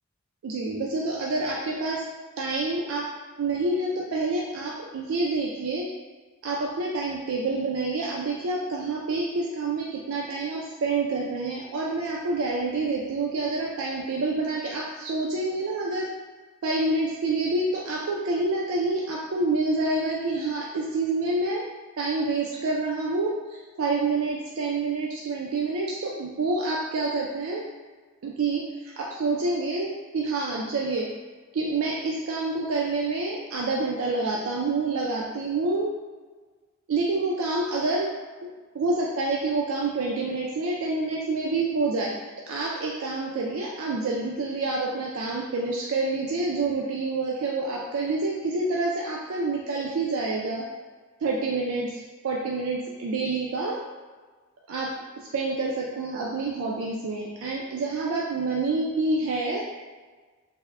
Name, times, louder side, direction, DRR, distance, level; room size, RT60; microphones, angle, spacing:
voice 1, 0.4-2.0 2.4-3.1 3.4-5.9 6.4-16.1 16.6-21.6 22.0-27.6 28.2-31.1 31.5-35.9 36.9-38.1 38.7-42.1 42.5-50.7 51.2-53.8 54.7-54.9 55.3-59.6, right 3 dB, 80° right, -3 dB, 0.4 m, -27 dB
3.4 x 2.1 x 3.4 m, 1.4 s
head